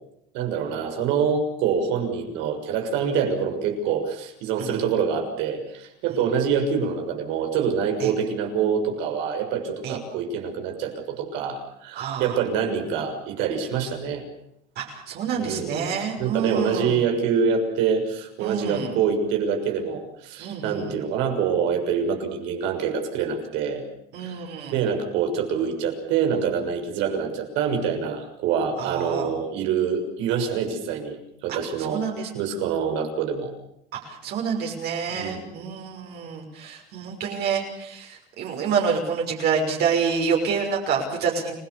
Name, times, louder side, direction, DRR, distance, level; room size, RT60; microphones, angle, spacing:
voice 1, 0.3-14.2 15.4-15.9 16.2-23.8 24.2-24.4 24.7-31.2 31.4-32.0 32.3-33.5 35.1-35.5, right 6 dB, 80° right, 4 dB, 6.6 m, -25 dB
voice 2, 11.9-12.4 14.8-17.0 18.4-18.9 20.4-21.0 24.1-24.8 28.8-29.3 31.8-32.3 33.9-41.5, right 6 dB, 60° right, 0 dB, 6.2 m, -27 dB
30.0 x 18.5 x 7.1 m, 0.77 s
cardioid pair, 135°, 19 cm